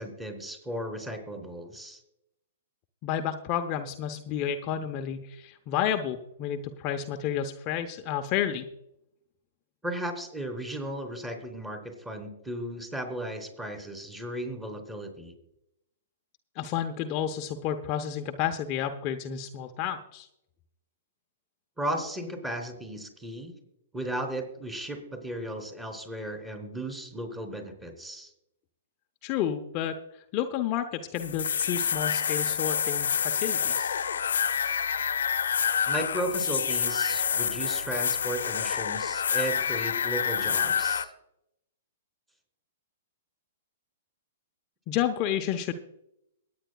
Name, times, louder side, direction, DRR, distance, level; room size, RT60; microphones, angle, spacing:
voice 1, 0.0-2.0 9.8-15.3 21.8-23.5 23.9-28.3 35.9-41.1, right 1 dB, 10° right, 4 dB, 3.5 m, -35 dB
voice 2, 3.0-8.6 16.6-20.3 29.2-30.0 30.3-33.9 44.9-45.7, left 9 dB, 40° left, 5 dB, 0.9 m, -31 dB
sound 1, 31.2-41.0, left 7 dB, 75° left, 0.9 m, -28 dB
23.0 x 9.5 x 2.4 m, 0.81 s
hypercardioid pair, 120°, 0 cm